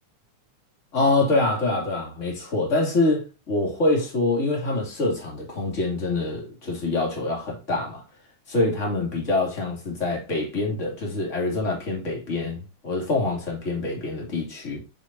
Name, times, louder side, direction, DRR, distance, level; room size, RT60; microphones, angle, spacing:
voice 1, 0.9-8.0 8.5-14.8, left 2 dB, 25° left, 2.8 m, -25 dB
7.3 x 6.9 x 2.7 m
omnidirectional pair, 3.5 m